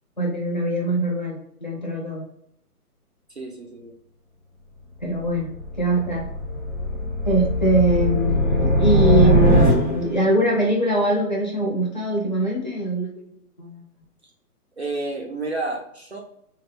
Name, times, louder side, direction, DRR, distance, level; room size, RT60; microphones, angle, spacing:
voice 1, 0.2-2.2 5.0-5.5 5.8-6.3 7.2-13.3 13.6-13.8, right 1 dB, 30° left, -3 dB, 0.6 m, -22 dB
voice 2, 3.4-3.9 14.8-16.2, right 2 dB, 45° right, 1 dB, 0.5 m, -30 dB
sound 1, 5.0-10.3, equal, 15° right, 0.9 m, -21 dB
4.2 x 2.3 x 3.3 m, 0.73 s
hypercardioid pair, 180°, 47 cm